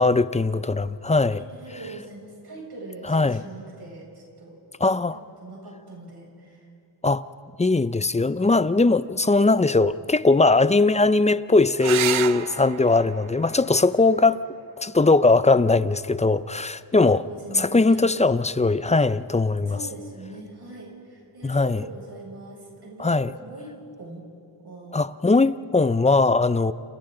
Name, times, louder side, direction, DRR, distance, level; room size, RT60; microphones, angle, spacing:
voice 1, 0.0-1.4 3.1-3.4 4.8-5.2 7.0-7.2 7.6-14.4 14.8-17.2 17.5-19.8 21.4-21.8 23.0-23.3 24.9-26.7, left 3 dB, 15° left, 0.5 m, -20 dB
voice 2, 1.3-4.1 4.4-4.5 5.4-6.7 17.0-18.1 19.7-24.2 24.6-25.0, right 2 dB, 50° right, 6.9 m, -41 dB
sound 1, 11.8-16.8 18.7-19.4 22.8-22.9 23.2-23.3, right 11 dB, 80° right, 0.7 m, -34 dB
30.0 x 28.5 x 3.9 m
cardioid pair, 75°, 48 cm